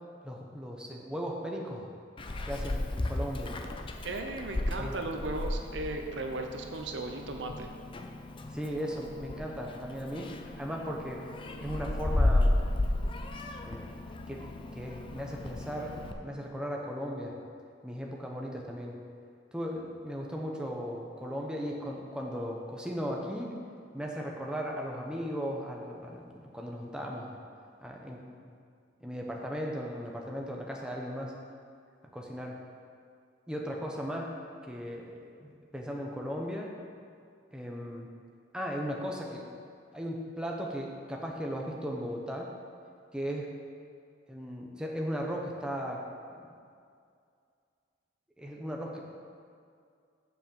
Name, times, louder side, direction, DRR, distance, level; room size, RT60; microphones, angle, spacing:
voice 1, 0.2-1.9 2.4-3.6 4.8-4.9 8.5-11.2 11.6-12.6 13.6-13.9 14.3-17.4 17.8-18.9 19.5-23.5 23.9-27.3 27.8-28.5 29.0-31.3 32.1-32.6 33.5-34.3 34.7-36.8 37.5-38.1 38.5-39.4 39.9-42.5 43.1-43.5 44.3-46.0 48.4-49.0, equal, 5° right, -1 dB, 0.9 m, -37 dB
Meow, 2.2-16.1, left 1 dB, 30° left, 0.5 m, -33 dB
voice 2, 4.0-7.7, right 2 dB, 75° right, 4 dB, 0.8 m, -36 dB
7.5 x 6.0 x 6.9 m, 2.3 s
head